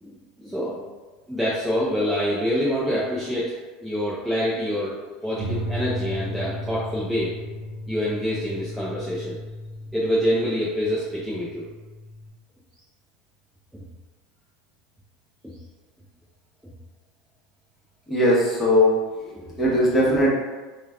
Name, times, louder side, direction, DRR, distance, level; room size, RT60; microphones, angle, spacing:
voice 1, 0.0-0.8 1.3-3.6 3.8-5.0 5.2-7.3 7.9-9.4 9.9-11.7 13.7-13.8 15.4-15.5, equal, 5° right, -8 dB, 0.5 m, -26 dB
sound 1, 5.4-12.3, equal, 45° right, 1.0 m, -34 dB
voice 2, 18.1-20.3, left 1 dB, 15° left, -6 dB, 1.0 m, -20 dB
3.1 x 2.2 x 2.2 m, 1.2 s
supercardioid pair, 115°, 0 cm